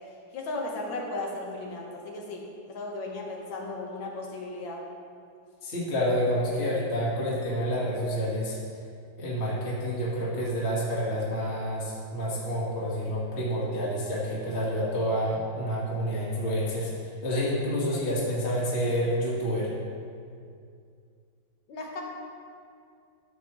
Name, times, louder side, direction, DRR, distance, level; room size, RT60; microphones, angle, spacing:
voice 1, 0.3-4.8 9.4-9.5 21.7-22.0, left 2 dB, 90° left, -1 dB, 2.0 m, -36 dB
voice 2, 5.6-8.6 9.2-16.9 17.2-19.7, equal, 35° left, -6 dB, 1.8 m, -28 dB
12.5 x 7.4 x 3.1 m, 2.3 s
omnidirectional pair, 2.1 m